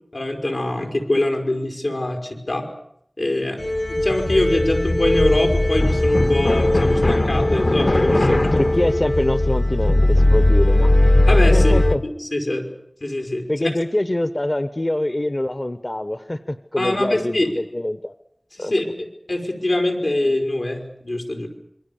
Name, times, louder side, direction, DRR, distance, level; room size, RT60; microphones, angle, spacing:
voice 1, 0.1-2.7 3.2-3.6 3.9-8.3 11.3-11.7 12.0-12.7 13.0-13.7 16.8-17.6 18.5-21.5, left 1 dB, 85° left, 3 dB, 5.0 m, -24 dB
sound 1, 3.6-11.9, left 1 dB, 65° left, 1.5 m, -17 dB
voice 2, 8.1-10.9 11.5-12.0 13.5-18.1 18.6-18.7, left 1 dB, 45° left, 11 dB, 1.0 m, -24 dB
26.5 x 23.0 x 7.2 m, 0.72 s
wide cardioid pair, 45°, 0 cm